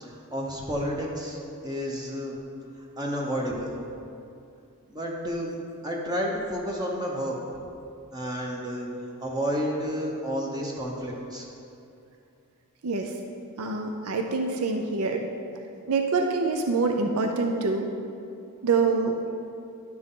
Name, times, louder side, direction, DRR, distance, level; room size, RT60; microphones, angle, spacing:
voice 1, 0.0-2.4 3.0-3.7 4.9-5.6 5.8-7.4 8.1-8.9 9.2-11.4, equal, 20° right, -2 dB, 0.8 m, -31 dB
voice 2, 12.8-13.1 13.6-15.2 15.9-17.9 18.6-19.2, right 4 dB, 70° right, 3 dB, 0.6 m, -25 dB
11.0 x 6.0 x 3.8 m, 2.6 s
head